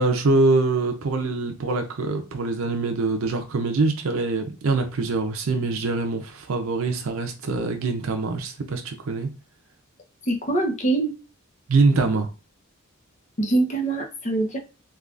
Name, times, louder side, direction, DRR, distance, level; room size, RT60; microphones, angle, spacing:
voice 1, 0.0-9.3 11.7-12.3, right 3 dB, 75° right, 0.5 m, -24 dB
voice 2, 10.3-11.1 13.4-14.6, right 2 dB, 35° left, 0.7 m, -23 dB
3.5 x 2.3 x 2.4 m
head